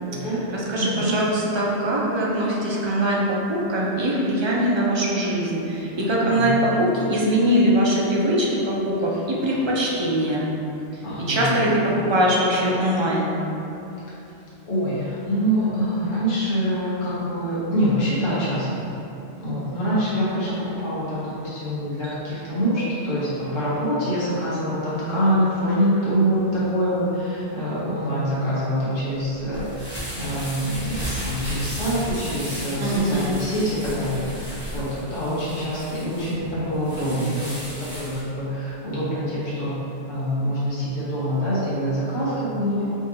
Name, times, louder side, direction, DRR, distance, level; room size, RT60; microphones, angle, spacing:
voice 1, 0.1-0.4 0.8-1.1 5.9-6.6 9.1-9.2 9.5-9.6 11.0-11.5 13.9-14.2 14.6-18.8 19.4-39.8 40.1-42.8, equal, 90° left, -10 dB, 1.3 m, -25 dB
voice 2, 0.7-3.2 3.5-10.5 11.3-13.3 32.8-33.4, right 1 dB, 35° right, -4 dB, 0.4 m, -22 dB
sound 1, 29.2-38.2, equal, 10° left, 1.0 m, -34 dB
5.1 x 2.6 x 2.8 m, 2.9 s
omnidirectional pair, 1.1 m